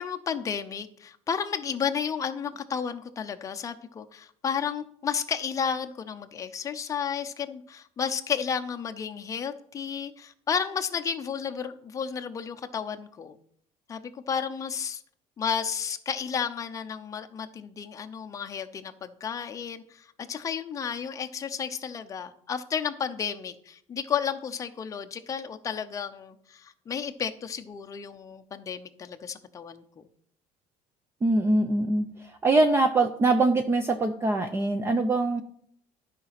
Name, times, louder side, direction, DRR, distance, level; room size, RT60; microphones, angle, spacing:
voice 1, 0.0-13.3 13.9-15.0 15.4-30.0, left 7 dB, 25° left, 6 dB, 0.7 m, -32 dB
voice 2, 31.2-32.0 32.4-35.4, right 2 dB, 15° right, 8 dB, 0.5 m, -23 dB
12.5 x 5.1 x 5.8 m, 0.64 s
cardioid pair, 175°, 14 cm